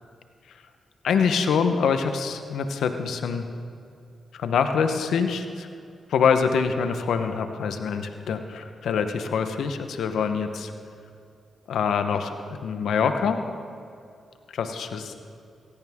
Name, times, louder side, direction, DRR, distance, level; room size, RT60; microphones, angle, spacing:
voice 1, 1.0-3.4 4.3-5.7 6.1-10.7 11.7-12.3 12.6-13.4 14.5-15.1, left 6 dB, 80° left, 7 dB, 1.0 m, -25 dB
17.0 x 15.5 x 3.7 m, 2.5 s
supercardioid pair, 50°, 0 cm